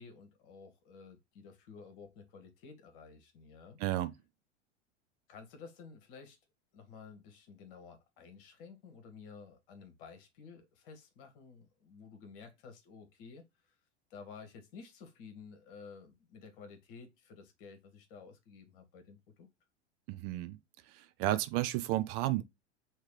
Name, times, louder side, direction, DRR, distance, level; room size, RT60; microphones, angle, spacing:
voice 1, 0.0-3.8 5.3-6.4 6.7-13.4 14.1-19.5, left 5 dB, 50° left, 1.4 m, -52 dB
voice 2, 3.8-4.1 20.1-20.6 20.9-22.4, right 15 dB, 35° right, 0.5 m, -32 dB
3.2 x 3.2 x 4.7 m
figure-of-eight pair, 85°, 34 cm